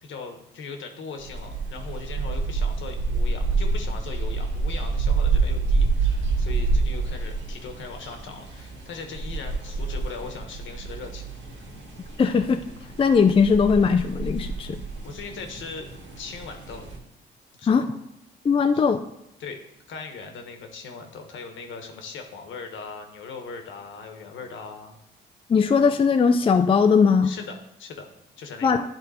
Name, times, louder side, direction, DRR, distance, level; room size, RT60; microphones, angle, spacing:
voice 1, 0.0-11.3 11.6-11.7 14.5-14.6 15.0-15.9 16.2-16.8 17.6-17.9 18.7-18.9 19.4-19.6 19.9-25.0 27.2-28.1 28.4-28.8, left 4 dB, 75° left, 4 dB, 1.3 m, -39 dB
sound 1, 1.2-17.0, right 4 dB, 70° right, 2.1 m, -28 dB
voice 2, 12.2-12.6 13.0-14.8 17.7-17.9 18.4-19.0 25.5-27.3 28.6-28.8, left 5 dB, 25° left, 6 dB, 0.4 m, -19 dB
10.5 x 3.9 x 4.2 m, 0.84 s
cardioid pair, 90°, 20 cm